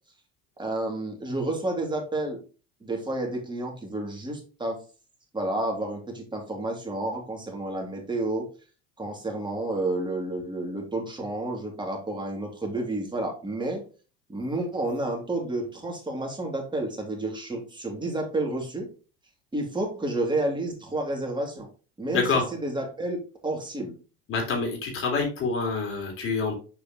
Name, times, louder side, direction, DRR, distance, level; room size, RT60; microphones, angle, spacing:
voice 1, 0.6-2.4 2.8-4.8 5.3-8.5 9.0-13.8 14.3-18.9 19.5-21.7 22.0-23.9, right 2 dB, 15° right, 1 dB, 2.7 m, -30 dB
voice 2, 22.1-22.5 24.3-26.5, left 4 dB, 45° left, 1 dB, 3.4 m, -26 dB
7.0 x 4.9 x 3.0 m, 0.36 s
hypercardioid pair, 80°, 29 cm